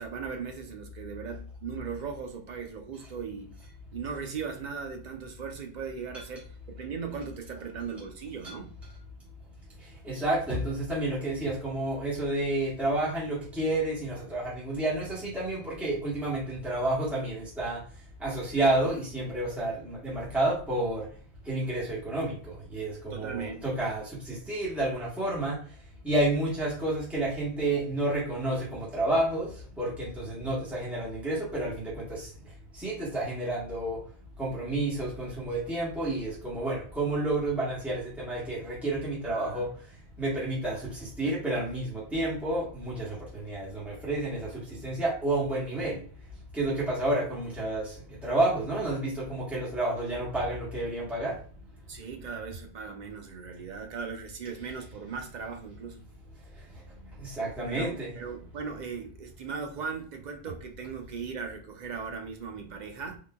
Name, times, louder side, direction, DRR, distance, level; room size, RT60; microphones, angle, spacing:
voice 1, 0.0-3.5 3.9-8.7 20.2-20.3 23.1-23.7 39.3-39.7 51.9-56.0 57.7-63.2, right 6 dB, 55° right, 0.6 m, -38 dB
voice 2, 10.0-17.8 18.2-21.1 21.5-25.6 26.0-29.5 29.8-32.3 32.8-34.0 34.4-39.7 40.2-44.5 44.8-46.0 46.5-47.9 48.2-51.3 57.2-58.1, right 1 dB, ahead, 1.2 m, -30 dB
3.8 x 2.6 x 2.2 m
omnidirectional pair, 1.1 m